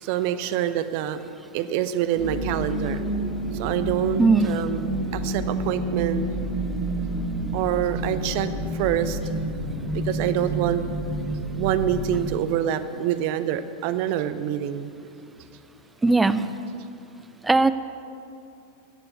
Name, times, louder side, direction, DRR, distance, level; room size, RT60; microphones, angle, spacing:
voice 1, 0.0-1.2 1.5-3.0 3.5-6.3 7.5-9.2 9.9-10.8 11.6-14.9, right 11 dB, 45° right, 11 dB, 0.7 m, -26 dB
sound 1, 2.2-12.4, right 1 dB, 10° left, 3.7 m, -29 dB
voice 2, 16.0-16.5 17.4-17.7, right 3 dB, 10° right, 13 dB, 0.5 m, -18 dB
15.0 x 6.9 x 8.3 m, 2.6 s
figure-of-eight pair, 90°, 0 cm